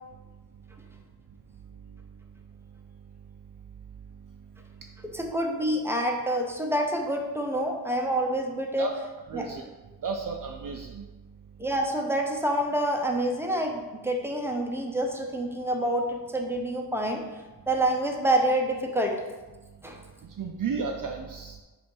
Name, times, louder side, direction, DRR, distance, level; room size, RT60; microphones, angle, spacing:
voice 1, 5.1-8.9 9.3-9.5 11.6-19.2 19.8-20.0, right 1 dB, 5° right, 1 dB, 0.7 m, -27 dB
voice 2, 9.3-9.6 10.0-11.1 20.2-21.6, right 5 dB, 50° right, 2 dB, 0.5 m, -33 dB
7.8 x 2.6 x 5.4 m, 1.2 s
wide cardioid pair, 160°, 41 cm